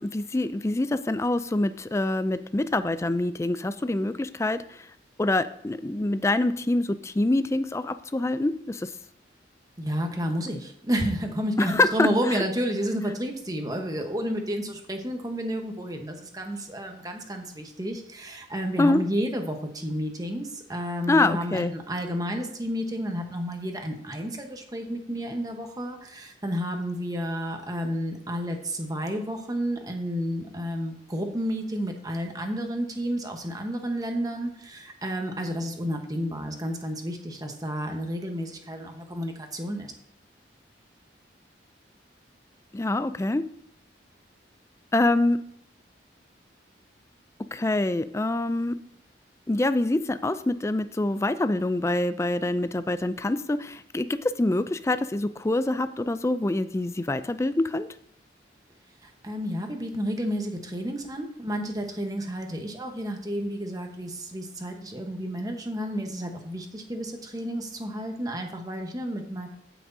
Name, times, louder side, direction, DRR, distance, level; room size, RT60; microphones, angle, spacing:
voice 1, 0.0-4.9 5.2-8.9 11.6-12.1 12.3-12.4 18.8-19.0 21.1-21.7 42.7-43.4 44.9-45.4 47.5-48.7 49.5-57.9, left 2 dB, 15° left, 13 dB, 0.4 m, -25 dB
voice 2, 9.8-39.9 59.0-69.5, equal, 20° right, 4 dB, 1.1 m, -31 dB
15.0 x 6.0 x 2.7 m, 0.68 s
head